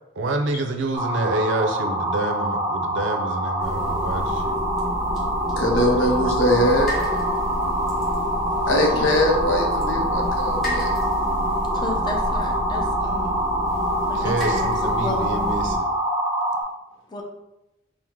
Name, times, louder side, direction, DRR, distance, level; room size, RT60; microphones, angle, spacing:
voice 1, 0.2-4.6 9.0-9.1 14.1-15.9, right 2 dB, 70° right, 5 dB, 0.5 m, -27 dB
sound 1, 0.9-16.6, right 1 dB, 20° right, 0.6 m, -25 dB
sound 2, 3.6-15.8, left 1 dB, ahead, 1.0 m, -30 dB
voice 2, 5.6-6.9 8.7-10.9, left 1 dB, 75° left, 1 dB, 0.7 m, -21 dB
voice 3, 8.3-9.0 11.7-13.5 14.1-15.3 17.1-17.2, left 2 dB, 25° left, 1 dB, 0.5 m, -34 dB
4.5 x 2.1 x 3.6 m, 0.91 s
head